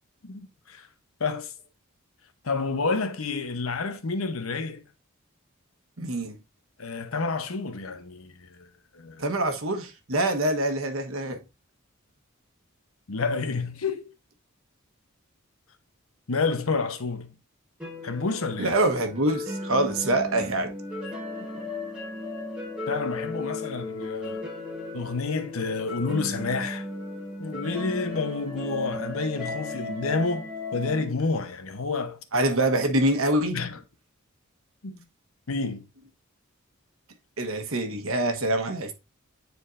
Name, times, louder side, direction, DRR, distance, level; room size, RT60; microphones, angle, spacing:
voice 1, 0.2-0.9 1.2-1.5 2.4-4.8 6.8-8.7 8.9-9.2 13.1-14.1 16.3-17.3 18.0-18.8 22.9-24.4 24.9-26.9 27.4-32.2 33.5-33.8 34.8-35.0 35.5-35.8, left 4 dB, 80° left, 1.0 m, -29 dB
voice 2, 6.0-6.4 9.2-11.4 18.6-20.7 32.3-33.6 37.4-38.9, right 1 dB, 75° right, 1.3 m, -25 dB
sound 1, 17.8-31.0, left 2 dB, 5° right, 1.9 m, -35 dB
9.5 x 4.5 x 2.6 m
head